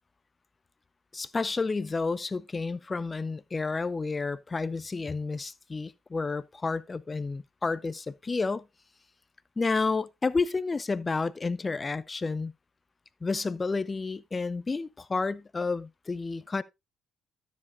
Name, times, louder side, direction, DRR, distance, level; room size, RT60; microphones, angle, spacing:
voice 1, 1.1-8.7 9.6-12.5 13.2-16.6, left 4 dB, 30° left, 0.6 m, -30 dB
13.0 x 7.2 x 2.5 m
hypercardioid pair, 50°, 0 cm